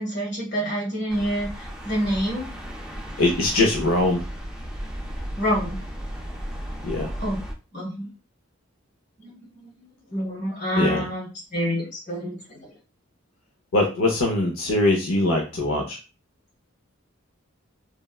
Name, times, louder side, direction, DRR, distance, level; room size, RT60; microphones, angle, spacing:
voice 1, 0.0-2.5 5.4-5.8 7.2-7.4 7.7-8.1 9.2-9.4 9.6-9.7 10.1-12.7, equal, 55° left, -4 dB, 1.6 m, -27 dB
sound 1, 1.1-7.5, equal, 5° right, 0.4 m, -35 dB
voice 2, 3.2-4.2 6.8-7.1 10.8-11.1 13.7-16.0, left 2 dB, 90° left, 1 dB, 0.6 m, -22 dB
3.3 x 2.1 x 2.3 m, 0.32 s
head